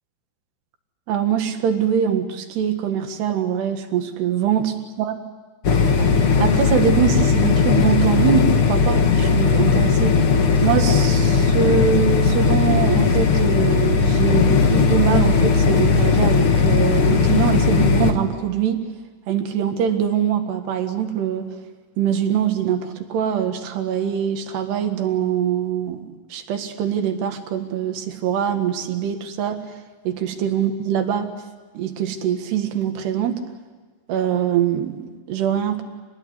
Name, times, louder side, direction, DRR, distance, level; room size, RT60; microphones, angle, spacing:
voice 1, 1.1-5.2 6.0-6.1 6.4-10.2 10.6-18.9 19.3-21.5 22.0-29.7 30.1-31.3 31.8-33.4 34.1-35.8, right 8 dB, 70° right, 6 dB, 3.8 m, -23 dB
sound 1, 5.6-18.1, left 5 dB, 60° left, 1.4 m, -17 dB
27.0 x 20.5 x 9.7 m, 1.4 s
omnidirectional pair, 5.0 m